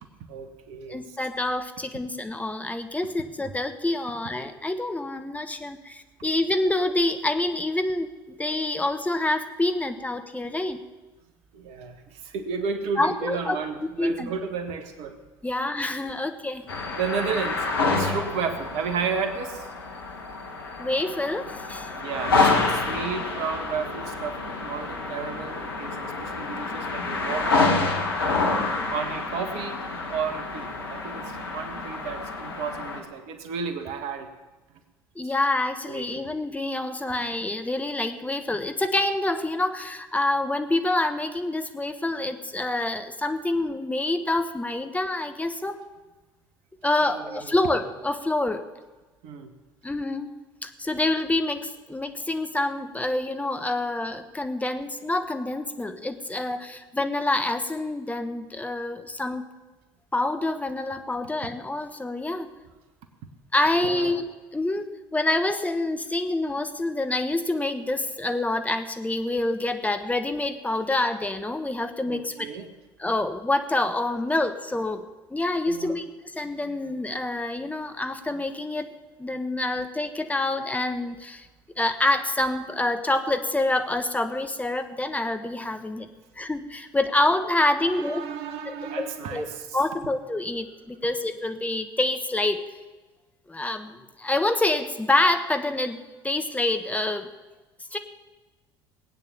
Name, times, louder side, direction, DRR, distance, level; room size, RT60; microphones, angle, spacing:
voice 1, 0.3-1.2 11.5-15.2 16.9-19.7 22.0-27.7 28.9-34.3 35.9-36.2 47.0-47.6 49.2-49.5 63.8-64.1 72.0-72.7 75.7-76.0 87.8-89.8, right 6 dB, 60° right, 7 dB, 1.7 m, -33 dB
voice 2, 0.9-10.8 13.0-13.6 14.0-14.3 15.4-16.6 20.8-21.9 35.1-45.8 46.8-48.6 49.8-50.4 50.6-59.4 60.1-62.5 63.5-72.5 73.0-75.0 75.3-76.0 76.3-78.9 79.2-81.5 81.8-86.1 86.4-88.2 88.6-89.5 89.7-92.6 93.5-96.0 96.2-97.3 97.9-98.0, left 2 dB, 10° left, 8 dB, 1.2 m, -27 dB
sound 1, 16.7-33.0, left 3 dB, 80° left, 1.8 m, -28 dB
19.0 x 9.1 x 7.2 m, 1.2 s
figure-of-eight pair, 60°, 12 cm